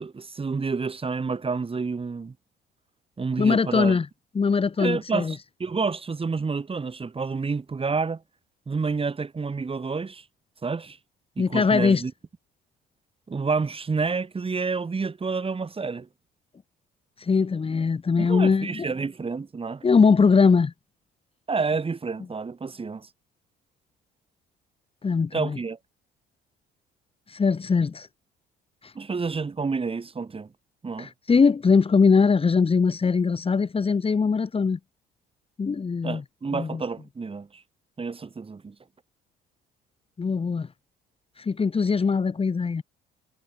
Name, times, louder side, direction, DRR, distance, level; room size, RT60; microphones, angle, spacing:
voice 1, 0.0-2.3 3.2-4.0 4.8-8.2 8.7-10.2 10.6-11.0 11.4-12.1 13.3-16.1 18.2-19.8 21.5-23.1 25.3-25.8 28.9-30.5 30.8-31.1 36.0-37.6 38.0-38.7, right 4 dB, 30° right, 6.7 m, -29 dB
voice 2, 3.4-4.1 4.3-5.3 11.4-12.0 17.2-18.9 19.8-20.7 25.0-25.6 27.3-28.1 28.8-28.9 31.0-34.8 35.6-36.2 36.5-36.8 40.2-40.7 41.4-42.8, left 5 dB, 30° left, 2.1 m, -21 dB
supercardioid pair, 80°, 19 cm